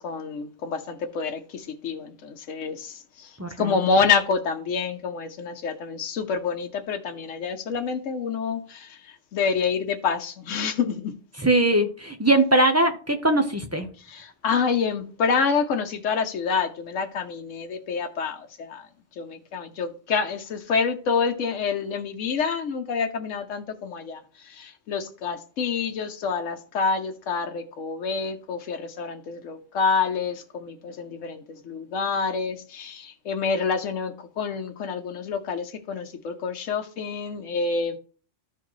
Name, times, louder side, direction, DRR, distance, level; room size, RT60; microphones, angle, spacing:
voice 1, 0.0-11.1 14.0-18.9 19.2-38.0, left 5 dB, 85° left, 1.2 m, -27 dB
voice 2, 3.4-3.7 11.4-13.9, right 1 dB, 15° right, 0.7 m, -21 dB
13.5 x 4.6 x 3.1 m
omnidirectional pair, 1.3 m